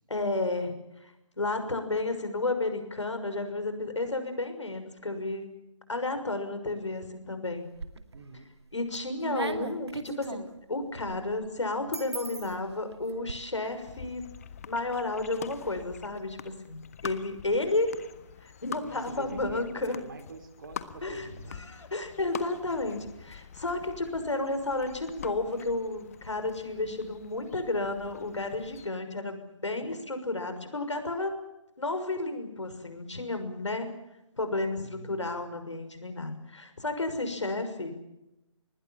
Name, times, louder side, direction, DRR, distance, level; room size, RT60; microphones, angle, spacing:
voice 1, 0.1-0.7 1.0-5.5 5.9-7.7 8.7-10.4 10.7-14.2 14.7-17.9 18.4-20.0 21.0-31.3 31.8-33.9 34.4-37.9, left 2 dB, 65° left, 8 dB, 6.1 m, -32 dB
sound 1, 7.6-8.3 8.7-13.3, right 4 dB, 55° right, 2.3 m, -39 dB
voice 2, 8.1-8.5 18.8-21.6 34.8-35.3, right 4 dB, 40° right, 7 dB, 3.5 m, -46 dB
sound 2, 13.6-28.9, left 8 dB, 30° left, 1.5 m, -45 dB
28.5 x 21.0 x 7.4 m, 0.90 s
figure-of-eight pair, 150°, 16 cm